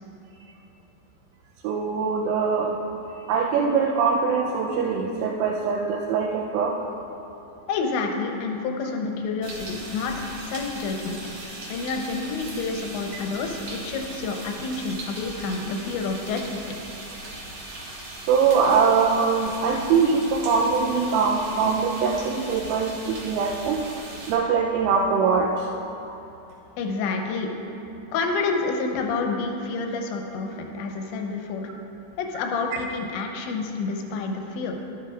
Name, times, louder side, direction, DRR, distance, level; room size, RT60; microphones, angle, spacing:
voice 1, 1.6-2.8 3.1-6.8 18.3-23.8 24.3-25.7 26.1-26.2, right 5 dB, 90° right, -1 dB, 3.3 m, -22 dB
voice 2, 7.7-16.6 26.8-27.5 28.1-31.7 32.2-34.8, left 4 dB, 80° left, 2 dB, 2.8 m, -29 dB
sound 1, 9.4-24.3, right 2 dB, 75° right, 1.7 m, -39 dB
13.0 x 12.0 x 2.4 m, 3.0 s
omnidirectional pair, 5.7 m